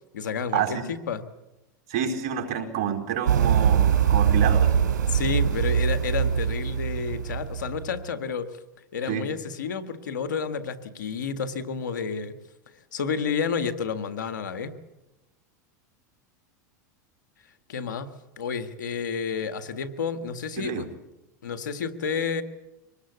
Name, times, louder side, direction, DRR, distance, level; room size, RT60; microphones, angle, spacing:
voice 1, 0.1-1.3 5.1-8.6 8.9-12.3 12.9-14.7 17.7-18.1 18.4-20.9 21.4-22.4, left 6 dB, 90° left, 10 dB, 1.8 m, -30 dB
voice 2, 1.9-4.8 9.1-9.2 20.6-20.9, right 8 dB, 60° right, 3 dB, 4.4 m, -28 dB
sound 1, 3.3-8.0, right 8 dB, 85° right, 3.3 m, -22 dB
24.5 x 19.5 x 8.2 m, 0.98 s
hypercardioid pair, 110°, 10 cm